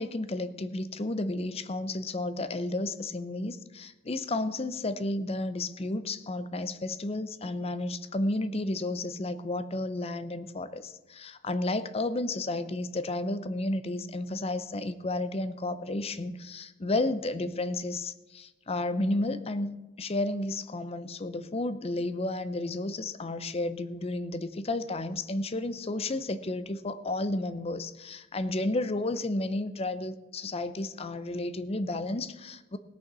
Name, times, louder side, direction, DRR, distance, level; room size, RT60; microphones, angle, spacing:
voice 1, 0.0-32.8, left 2 dB, 30° left, 12 dB, 0.6 m, -32 dB
17.5 x 6.7 x 6.0 m, 1.1 s
head